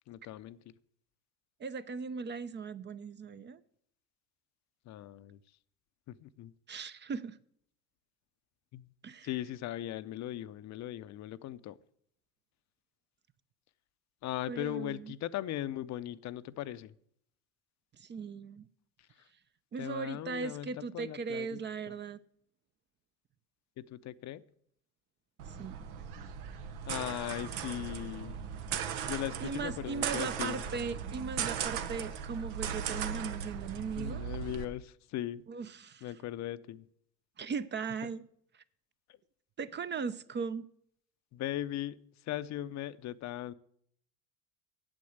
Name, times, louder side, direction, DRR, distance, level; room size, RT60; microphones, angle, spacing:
voice 1, 0.1-0.7 4.9-5.4 6.1-6.5 8.7-8.9 9.2-11.8 14.2-16.9 19.8-20.7 20.9-21.6 23.8-24.4 26.9-28.4 29.1-30.6 34.0-35.4 36.0-36.9 39.1-39.2 41.3-43.5, left 13 dB, 55° left, 0.7 m, -38 dB
voice 2, 1.6-3.6 6.7-7.4 9.0-9.3 14.5-15.1 17.9-18.7 19.7-22.2 25.5-25.9 28.9-29.1 29.4-34.2 35.5-36.1 37.4-38.2 38.5-38.6 39.6-40.7, right 5 dB, 30° right, 0.6 m, -38 dB
sound 1, 25.4-34.6, right 8 dB, 80° right, 1.1 m, -38 dB
8.8 x 7.8 x 7.9 m
supercardioid pair, 85°, 35 cm